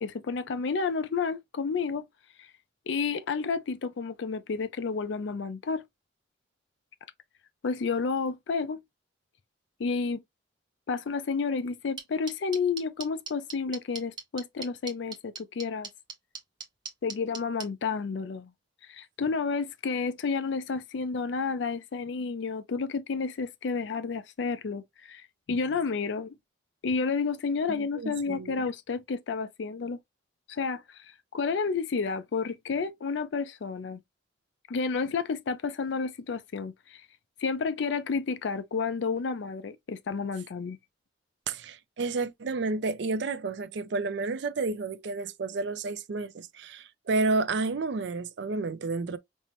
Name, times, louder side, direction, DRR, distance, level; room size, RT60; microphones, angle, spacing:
voice 1, 0.0-2.0 2.4-2.5 2.9-5.8 7.6-8.8 9.8-10.2 10.9-15.9 17.0-18.5 18.9-26.3 26.8-30.0 30.5-34.0 34.7-37.1 37.4-40.8, left 5 dB, 70° left, 0.4 m, -31 dB
sound 1, 12.0-17.6, right 5 dB, 25° right, 0.8 m, -38 dB
voice 2, 27.7-28.6 41.5-49.2, right 3 dB, 65° right, 0.4 m, -31 dB
5.3 x 2.1 x 2.9 m
head